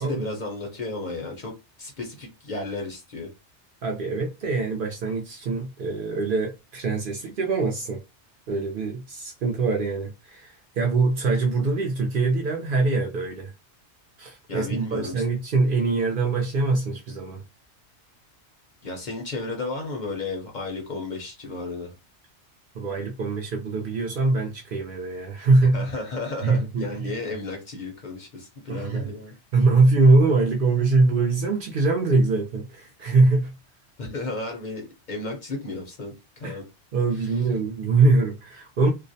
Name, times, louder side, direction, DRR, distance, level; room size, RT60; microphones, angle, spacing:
voice 1, 0.0-1.5 1.8-3.3 14.5-15.2 18.8-21.9 25.7-29.4 34.0-36.6, left 2 dB, 50° left, 0.6 m, -33 dB
voice 2, 3.8-8.0 8.5-13.5 14.2-17.4 22.7-25.9 26.4-27.1 28.7-29.0 29.5-33.5 36.4-36.6 36.9-38.9, right 3 dB, 60° right, 0.6 m, -23 dB
2.4 x 2.0 x 2.6 m
omnidirectional pair, 1.2 m